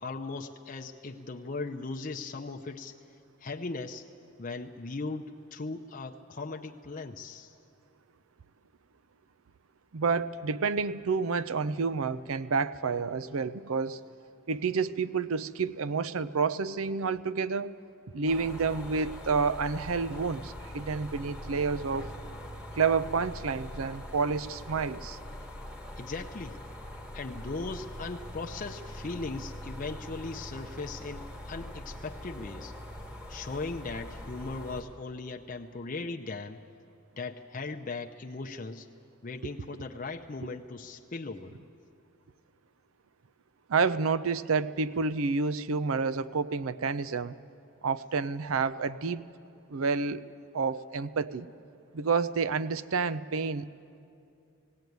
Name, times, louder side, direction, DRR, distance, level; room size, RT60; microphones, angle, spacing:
voice 1, 0.0-2.9 3.4-4.0 4.4-7.5 26.0-26.6 27.1-32.7 33.3-36.6 37.2-38.9 39.2-41.6, left 3 dB, 40° left, 2 dB, 0.6 m, -38 dB
voice 2, 9.9-14.0 14.5-17.7 18.1-22.1 22.8-25.2 43.7-47.4 47.8-49.2 49.7-50.2 50.5-51.5 51.9-53.7, right 5 dB, 80° right, 15 dB, 0.5 m, -29 dB
sound 1, 18.3-34.8, left 1 dB, 5° right, 1.4 m, -43 dB
17.5 x 17.0 x 9.3 m, 2.6 s
head